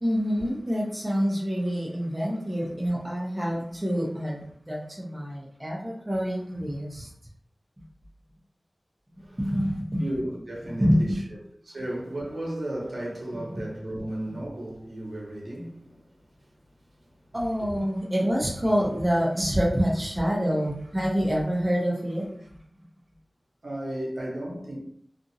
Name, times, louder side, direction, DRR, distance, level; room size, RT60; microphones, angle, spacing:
voice 1, 0.0-7.1 9.4-10.0 10.8-11.2 17.3-22.3, equal, 25° right, 0.9 m, -26 dB
voice 2, 9.2-9.6 10.0-11.2 11.6-16.5 17.6-17.8 23.6-24.8, right 1 dB, 85° right, 0.9 m, -34 dB
2.7 x 2.5 x 2.7 m
wide cardioid pair, 55°, 0 cm